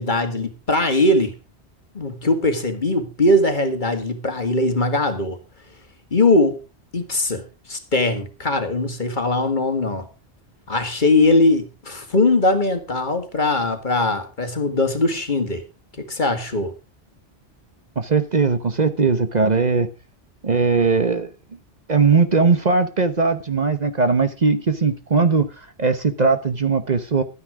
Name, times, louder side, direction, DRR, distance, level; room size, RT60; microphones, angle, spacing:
voice 1, 0.0-1.3 1.9-5.4 6.1-6.6 6.9-10.1 10.7-15.6 16.1-16.7, left 2 dB, 45° left, 8 dB, 2.0 m, -20 dB
voice 2, 18.0-19.9 20.4-21.3 21.9-25.5 25.8-27.2, right 4 dB, 40° right, 10 dB, 1.1 m, -19 dB
12.5 x 9.8 x 4.9 m, 0.31 s
omnidirectional pair, 1.1 m